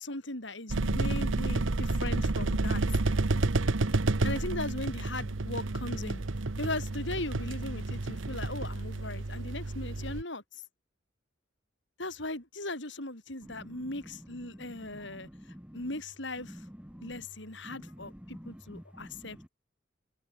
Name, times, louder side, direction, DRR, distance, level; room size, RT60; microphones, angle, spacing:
voice 1, 0.0-2.8 4.2-6.2 6.6-10.6 12.0-15.3 15.7-16.6 17.0-19.4, left 2 dB, 65° left, 7.6 m, -38 dB
sound 1, 0.7-10.2, right 2 dB, 85° right, 1.1 m, -30 dB
voice 2, 13.4-13.8 14.6-14.7 15.0-15.8 16.5-17.2 17.6-19.5, equal, 5° right, 2.3 m, -48 dB
head